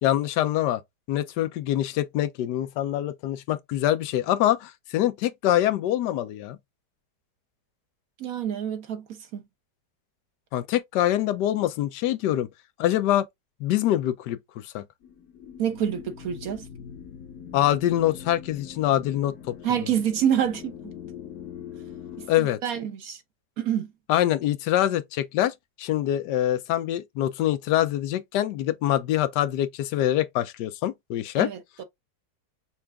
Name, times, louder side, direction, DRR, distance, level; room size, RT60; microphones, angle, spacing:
voice 1, 0.0-0.8 1.1-6.6 10.5-12.5 12.8-13.3 13.6-14.8 17.5-19.6 22.3-22.6 24.1-31.5, left 13 dB, 90° left, 1.2 m, -25 dB
voice 2, 8.2-9.4 15.6-16.7 19.6-20.9 22.2-23.2 23.6-23.9 31.4-31.8, right 9 dB, 65° right, 1.1 m, -27 dB
sound 1, 15.0-22.3, left 8 dB, 70° left, 1.2 m, -42 dB
5.7 x 2.4 x 3.4 m
omnidirectional pair, 1.8 m